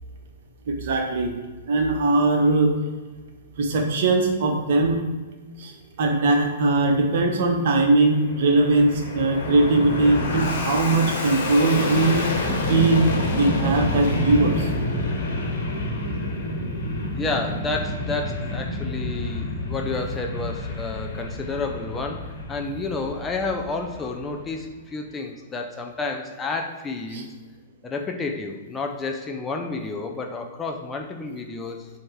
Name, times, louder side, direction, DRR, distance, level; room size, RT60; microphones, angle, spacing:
voice 1, 0.7-1.3 1.7-2.8 3.6-5.0 5.6-5.7 6.0-12.2 12.7-14.7 27.1-27.2, right 2 dB, 50° right, 3 dB, 1.0 m, -20 dB
Fixed-wing aircraft airplane, 8.0-24.6, left 1 dB, 50° left, 1.4 m, -28 dB
voice 2, 17.1-27.3 27.8-31.9, left 3 dB, 15° left, 2 dB, 0.5 m, -30 dB
7.5 x 2.9 x 4.7 m, 1.3 s
figure-of-eight pair, 105°, 0 cm